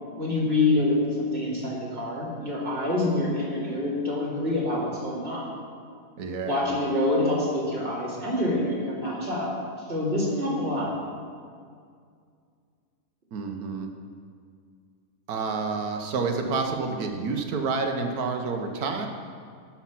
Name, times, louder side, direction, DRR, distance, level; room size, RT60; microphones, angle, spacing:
voice 1, 0.2-5.5 6.4-9.5 9.9-10.9, left 2 dB, 40° right, -6 dB, 2.7 m, -26 dB
voice 2, 6.2-6.6 13.3-13.9 15.3-19.1, right 4 dB, 85° right, 4 dB, 1.4 m, -29 dB
12.0 x 5.7 x 5.8 m, 2.2 s
omnidirectional pair, 1.5 m